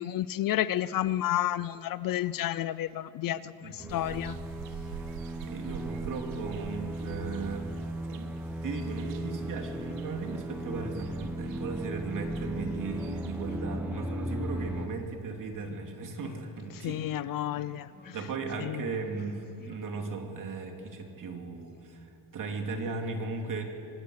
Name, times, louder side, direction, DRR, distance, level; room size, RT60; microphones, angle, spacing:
voice 1, 0.0-4.4 16.8-18.1 18.6-18.8, left 13 dB, 50° left, 17 dB, 0.5 m, -31 dB
voice 2, 3.3-4.0 5.1-5.2 5.4-7.7 8.1-8.3 8.6-17.3 18.1-23.6, right 4 dB, 45° right, 3 dB, 2.9 m, -37 dB
sound 1, 3.8-14.9, right 1 dB, 5° right, 1.3 m, -36 dB
sound 2, 3.9-13.6, right 11 dB, 85° right, 1.1 m, -47 dB
sound 3, 13.5-13.6 13.8-14.1 14.5-14.7 15.0-15.2 15.6-15.8 16.2-16.4 16.8-17.0 17.4-17.7 17.9-18.1 18.5-18.7 19.0-19.3 19.6-19.7, left 4 dB, 20° left, 3.7 m, -49 dB
24.5 x 19.0 x 6.5 m, 2.7 s
cardioid pair, 125°, 44 cm